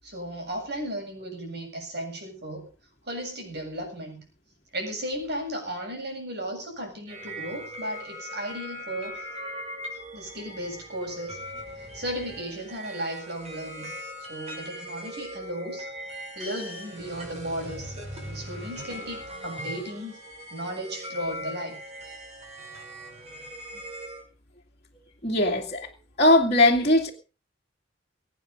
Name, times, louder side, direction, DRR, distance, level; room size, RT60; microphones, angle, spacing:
voice 1, 0.0-2.7 3.1-4.2 4.7-9.2 10.1-11.4 11.9-13.9 14.3-15.9 16.4-18.0 18.2-20.2 20.5-21.8, equal, 60° right, 7.7 m, -35 dB
sound 1, 7.1-24.2, equal, 35° right, 6.0 m, -40 dB
voice 2, 25.2-25.9 26.2-27.1, left 1 dB, 35° left, 2.3 m, -20 dB
23.0 x 9.4 x 5.3 m
head